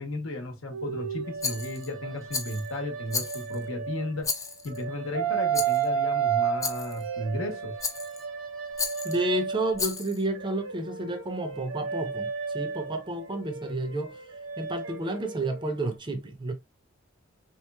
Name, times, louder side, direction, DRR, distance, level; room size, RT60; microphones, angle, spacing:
voice 1, 0.0-4.3 4.6-7.7, left 1 dB, 75° left, 0.9 m, -34 dB
sound 1, 0.7-4.3 4.7-9.9 10.4-15.9, right 7 dB, 75° right, 0.9 m, -32 dB
Rattle, 1.4-1.9 2.3-2.7 3.1-3.6 4.2-4.8 5.5-5.9 6.6-7.0 7.8-8.2 8.8-9.2 9.7-10.2, left 5 dB, 15° left, 0.5 m, -33 dB
voice 2, 9.0-12.3 12.5-14.1 14.6-16.5, right 2 dB, 25° right, 0.7 m, -30 dB
4.0 x 3.0 x 2.2 m
head